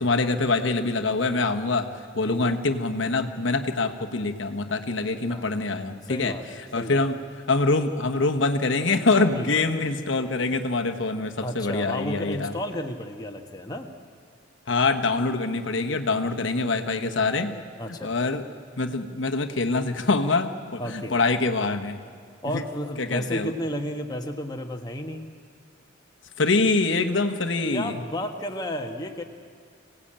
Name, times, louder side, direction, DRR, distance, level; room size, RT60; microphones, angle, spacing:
voice 1, 0.0-1.9 2.1-6.4 6.7-7.2 7.5-12.5 14.7-17.5 18.0-18.4 18.8-22.0 22.5-22.6 23.0-23.5 26.4-28.0, left 3 dB, 80° left, 5 dB, 1.2 m, -24 dB
voice 2, 2.2-2.6 5.3-5.5 6.0-6.4 6.8-7.0 9.3-9.5 11.4-13.9 17.8-18.1 20.8-21.2 22.4-25.3 27.7-29.2, equal, 20° left, 3 dB, 1.3 m, -32 dB
26.0 x 17.5 x 8.8 m, 2.2 s
head